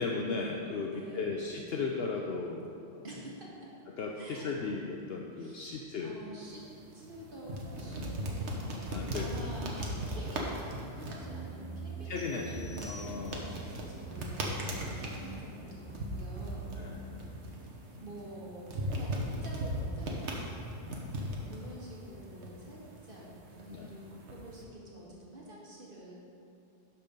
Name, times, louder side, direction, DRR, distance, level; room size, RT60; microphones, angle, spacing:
voice 1, 0.0-3.0 4.0-6.2 7.9-8.1 8.9-9.5 10.2-10.3 12.1-12.5 12.9-13.5 14.7-14.9 16.7-17.1 17.9-18.1 20.8-21.4 23.7-23.9, left 4 dB, 65° left, 0 dB, 0.8 m, -37 dB
voice 2, 0.9-1.4 3.0-3.7 4.1-4.6 5.3-6.7 6.9-10.6 10.9-16.6 18.0-20.6 21.3-23.3 23.6-26.1, right 1 dB, 50° right, -5 dB, 1.9 m, -48 dB
sound 1, 6.4-24.6, right 1 dB, 85° right, 1.4 m, -39 dB
sound 2, 11.2-17.1, right 4 dB, 10° right, 0.5 m, -45 dB
sound 3, 12.2-13.7, left 2 dB, 20° left, 2.2 m, -51 dB
12.0 x 4.4 x 5.2 m, 2.6 s
omnidirectional pair, 1.1 m